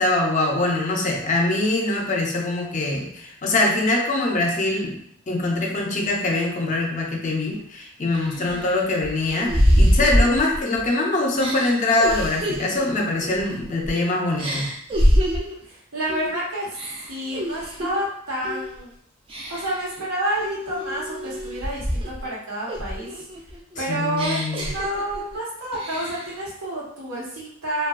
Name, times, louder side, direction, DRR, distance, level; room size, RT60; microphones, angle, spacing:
voice 1, 0.0-5.0 5.3-14.7 23.9-24.7, left 2 dB, 35° left, 1 dB, 0.4 m, -23 dB
voice 2, 5.6-6.0 8.3-8.7 15.7-16.7 17.1-18.9 19.5-23.2 23.8-27.9, right 1 dB, 90° right, -5 dB, 1.0 m, -29 dB
sound 1, 7.5-7.6 8.1-10.9 11.3-14.0 14.4-15.6 16.1-16.4 16.7-18.0 18.4-18.8 19.3-19.9 20.4-22.3 22.7-25.4 25.7-26.4, equal, 25° right, 0.3 m, -24 dB
2.7 x 2.3 x 2.3 m, 0.71 s
head